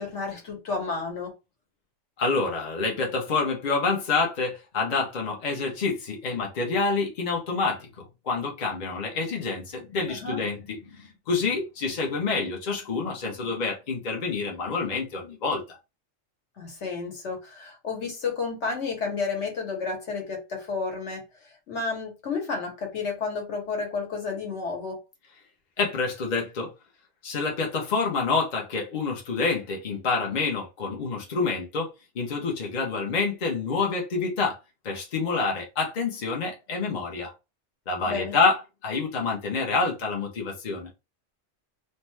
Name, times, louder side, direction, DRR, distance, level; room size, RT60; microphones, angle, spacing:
voice 1, 0.0-1.3 10.1-10.4 16.6-21.2 21.7-25.0 38.1-38.4, left 4 dB, 60° left, 1.2 m, -31 dB
voice 2, 2.2-15.8 25.8-26.7 27.2-31.9 32.1-34.6 34.8-37.3 37.9-40.9, left 4 dB, 45° left, 0.8 m, -27 dB
2.6 x 2.2 x 3.1 m
omnidirectional pair, 1.3 m